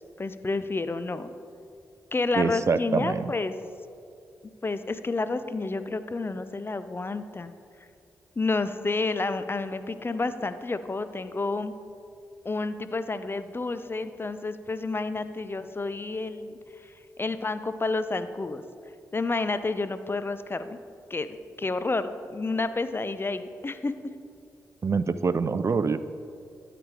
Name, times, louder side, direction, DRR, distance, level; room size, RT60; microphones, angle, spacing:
voice 1, 0.2-1.3 2.1-3.5 4.6-7.5 8.4-11.7 12.4-16.5 17.2-18.6 19.1-20.8 21.1-21.3 21.6-23.9, left 3 dB, 30° left, 12 dB, 0.6 m, -30 dB
voice 2, 2.4-3.2 24.8-26.0, right 5 dB, 45° right, 13 dB, 0.4 m, -25 dB
12.0 x 5.0 x 4.9 m, 2.5 s
supercardioid pair, 40°, 7 cm